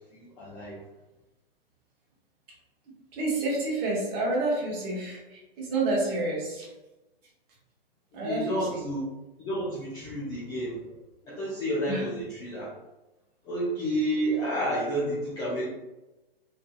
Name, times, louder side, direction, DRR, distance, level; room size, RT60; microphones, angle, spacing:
voice 1, 0.1-0.8 8.2-9.0 9.4-10.8 11.3-12.7 13.4-15.7, right 1 dB, 15° left, -8 dB, 0.3 m, -30 dB
voice 2, 3.1-6.7 8.1-8.8 11.2-11.4 11.9-12.0, right 2 dB, 30° right, -3 dB, 1.0 m, -29 dB
2.6 x 2.5 x 2.4 m, 1.0 s
hypercardioid pair, 125°, 30 cm